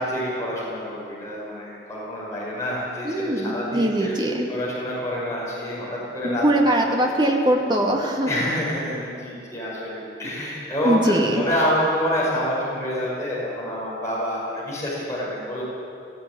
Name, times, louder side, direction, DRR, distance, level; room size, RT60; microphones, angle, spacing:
voice 1, 0.0-4.2 4.5-6.4 8.2-15.6, equal, 15° left, -7 dB, 5.4 m, -27 dB
voice 2, 3.0-4.5 6.2-8.3 10.8-11.5, right 1 dB, 25° right, 0 dB, 2.5 m, -21 dB
18.5 x 14.5 x 9.8 m, 2.6 s
head